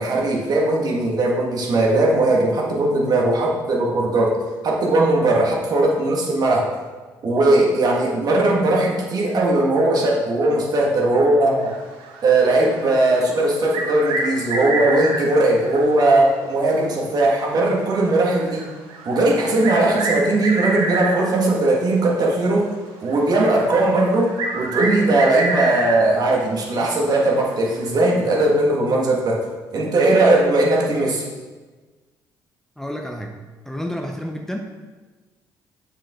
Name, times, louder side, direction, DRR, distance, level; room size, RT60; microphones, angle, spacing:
voice 1, 0.0-4.4 4.6-6.7 7.2-11.8 12.2-18.7 19.0-22.7 23.0-29.4 29.7-31.2, right 2 dB, 55° right, -2 dB, 1.8 m, -19 dB
sound 1, 11.6-13.1 13.5-16.2 16.5-16.6 17.2-17.3 17.9-21.5 22.3-22.5 23.1-26.2 26.6-26.7 27.8-28.0, right 2 dB, 80° right, 1.2 m, -28 dB
voice 2, 32.8-33.4 33.6-34.6, equal, 5° left, 2 dB, 0.7 m, -29 dB
6.9 x 5.9 x 3.7 m, 1.3 s
supercardioid pair, 80°, 8 cm